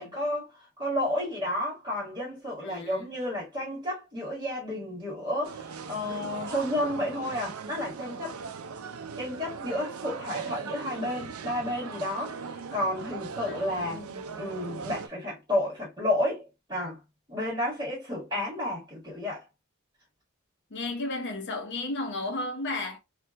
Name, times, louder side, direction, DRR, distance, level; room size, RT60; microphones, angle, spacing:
voice 1, 0.0-8.4 9.2-14.0 14.4-17.0 17.3-19.5, left 1 dB, 20° right, 1.5 m, -31 dB
voice 2, 2.6-3.1 13.5-14.4 20.7-23.0, left 2 dB, 55° left, 0.8 m, -34 dB
sound 1, 5.4-15.1, right 6 dB, 70° right, 0.4 m, -39 dB
3.4 x 2.7 x 2.2 m
head